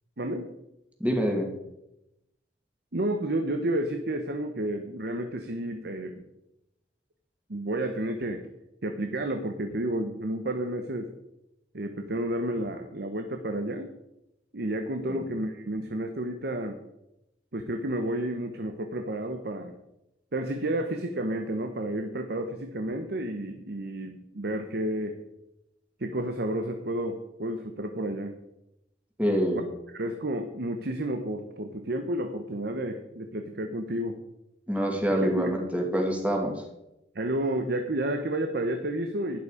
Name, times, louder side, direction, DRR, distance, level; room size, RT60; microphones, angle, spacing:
voice 1, 0.2-0.5 2.9-6.2 7.5-8.5 8.8-11.1 11.7-13.9 14.5-16.8 17.5-19.7 20.3-25.2 26.0-28.3 29.5-29.7 29.9-34.2 35.2-35.5 37.1-39.4, right 1 dB, 60° right, 6 dB, 1.1 m, -31 dB
voice 2, 1.0-1.5 15.1-15.2 29.2-29.6 34.7-36.5, equal, 10° right, 1 dB, 2.5 m, -26 dB
11.5 x 11.0 x 5.0 m, 0.88 s
head